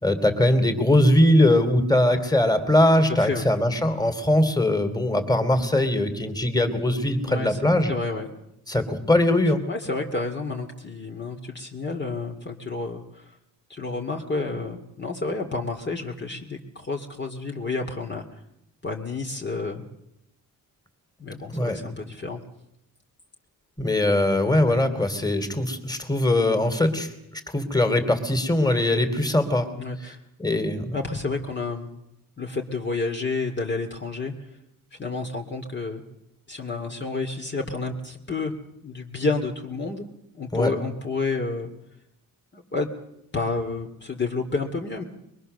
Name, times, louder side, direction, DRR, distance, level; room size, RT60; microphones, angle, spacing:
voice 1, 0.0-7.9 8.7-9.6 21.5-21.8 23.8-27.1 27.5-29.7 30.4-30.8 40.5-40.7, left 1 dB, 10° left, 8 dB, 3.0 m, -21 dB
voice 2, 3.1-3.5 7.3-7.6 7.9-8.3 9.7-13.2 13.7-18.2 18.8-19.8 21.2-22.4 29.8-30.2 30.9-31.9 32.4-34.3 35.0-36.0 36.5-38.5 38.8-40.0 40.3-41.7 42.5-42.9 43.3-45.0, left 3 dB, 30° left, 2 dB, 2.5 m, -30 dB
23.0 x 23.0 x 6.8 m, 0.83 s
cardioid pair, 120°, 34 cm